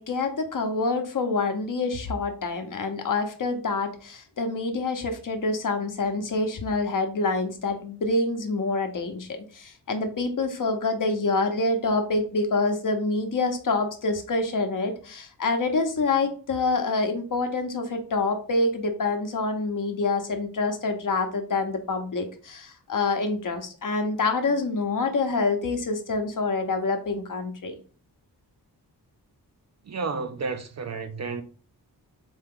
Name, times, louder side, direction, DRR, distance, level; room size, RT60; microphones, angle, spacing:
voice 1, 0.0-27.8, left 3 dB, 50° left, 0.9 m, -26 dB
voice 2, 29.9-31.4, right 4 dB, 45° right, 0.5 m, -31 dB
4.4 x 2.8 x 3.7 m
wide cardioid pair, 130°, 40 cm